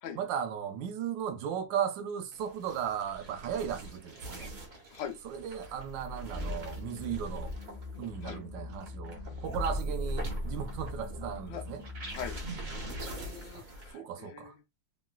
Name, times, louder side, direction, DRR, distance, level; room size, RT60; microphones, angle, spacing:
voice 1, 0.1-4.5 5.2-7.5 8.0-11.8 13.5-13.6 13.9-14.5, right 8 dB, 80° right, 1.3 m, -36 dB
sound 1, 2.3-13.9, equal, 65° right, 0.4 m, -40 dB
voice 2, 4.7-5.2 8.2-8.4 11.5-11.6 12.1-12.4 12.8-14.5, left 9 dB, 80° left, 1.3 m, -42 dB
sound 2, 6.3-12.4, left 4 dB, ahead, 1.5 m, -44 dB
3.0 x 3.0 x 2.2 m
omnidirectional pair, 2.0 m